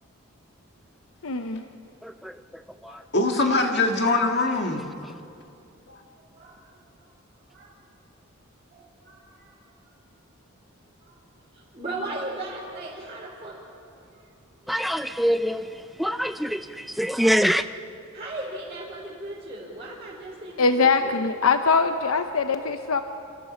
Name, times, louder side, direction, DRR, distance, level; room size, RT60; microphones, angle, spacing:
voice 1, 1.2-1.6 20.6-23.0, left 4 dB, 80° left, 0.8 m, -22 dB
voice 2, 2.0-3.5 4.0-4.1 14.7-17.7, equal, ahead, 0.4 m, -26 dB
voice 3, 2.9-4.8 5.9-6.0, left 3 dB, 50° left, 1.8 m, -23 dB
voice 4, 6.2-6.6 7.5-7.7 8.7-9.6 11.0-11.3 11.5-13.6 14.6-14.7 18.1-21.2, right 2 dB, 30° right, 3.8 m, -37 dB
27.5 x 15.0 x 7.2 m
head